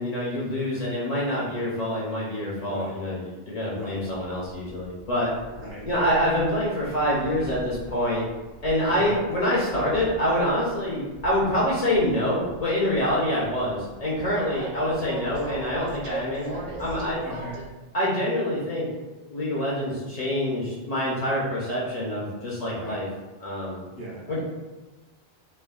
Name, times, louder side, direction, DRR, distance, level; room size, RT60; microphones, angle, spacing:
voice 1, 0.0-5.3 5.8-8.2 8.6-17.2 17.9-18.9 19.3-23.1 23.4-23.8 24.3-24.4, equal, 50° left, -6 dB, 0.5 m, -26 dB
voice 2, 3.7-4.0 5.5-5.9 8.9-9.2 17.2-17.6 22.7-23.0 23.9-24.2, right 1 dB, 70° right, -6 dB, 1.1 m, -38 dB
Train, 4.4-17.7, right 1 dB, 55° right, 0.5 m, -41 dB
3.3 x 2.0 x 2.2 m, 1.2 s
omnidirectional pair, 1.0 m